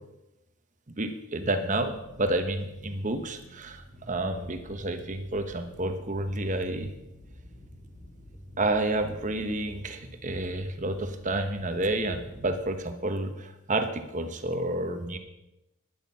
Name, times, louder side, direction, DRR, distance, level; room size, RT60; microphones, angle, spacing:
voice 1, 1.0-6.9 8.6-15.2, right 2 dB, 35° right, 7 dB, 1.1 m, -30 dB
sound 1, 1.6-12.7, left 1 dB, 40° left, 5.6 m, -49 dB
11.5 x 10.5 x 5.6 m, 0.94 s
head